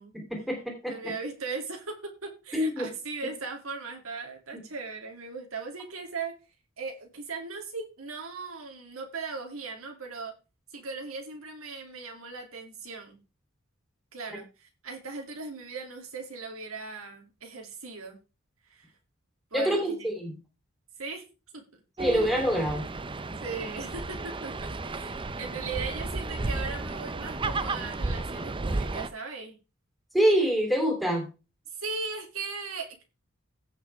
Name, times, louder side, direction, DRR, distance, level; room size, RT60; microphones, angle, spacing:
voice 1, 0.1-0.9 2.5-2.9 4.5-4.6 19.5-20.3 22.0-22.8 30.1-31.3, equal, ahead, 0 dB, 3.3 m, -26 dB
voice 2, 0.9-6.3 6.8-10.3 10.7-13.2 14.1-18.2 18.7-18.9 19.5-20.1 21.0-21.2 21.5-21.6 23.4-29.6 31.8-33.0, right 4 dB, 85° right, 2 dB, 2.8 m, -38 dB
sound 1, 22.0-29.1, right 3 dB, 25° right, 0.6 m, -33 dB
16.5 x 6.0 x 3.5 m, 0.30 s
head